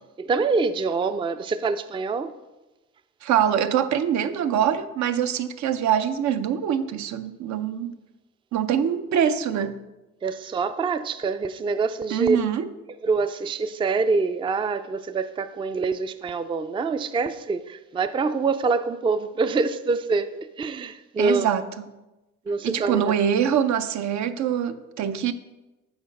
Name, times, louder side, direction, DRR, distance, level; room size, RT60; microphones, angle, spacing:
voice 1, 0.2-2.3 10.2-12.4 13.0-21.5 22.5-23.1, right 4 dB, 15° right, 0.3 m, -25 dB
voice 2, 3.2-8.0 8.5-9.8 12.1-12.7 21.2-21.9 22.6-25.3, right 9 dB, 70° right, 0.6 m, -24 dB
7.9 x 4.0 x 5.2 m
cardioid pair, 90°, 30 cm